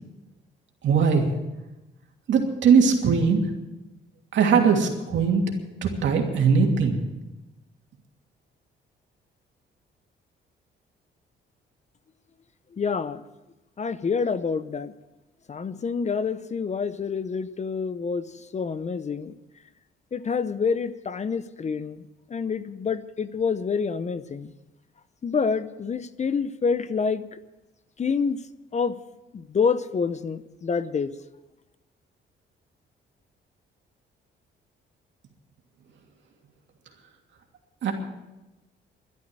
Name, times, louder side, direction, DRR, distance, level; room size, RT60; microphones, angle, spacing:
voice 1, 0.8-1.3 2.3-3.4 4.3-5.4 5.8-7.0 37.8-37.9, right 6 dB, 70° right, 2 dB, 2.8 m, -20 dB
voice 2, 12.7-13.2 13.8-14.9 15.5-19.3 20.1-24.5 25.2-27.4 28.0-28.4 28.7-28.9 29.3-31.1, left 5 dB, 35° left, 14 dB, 0.8 m, -27 dB
12.0 x 11.0 x 9.0 m, 1.0 s
cardioid pair, 90°, 20 cm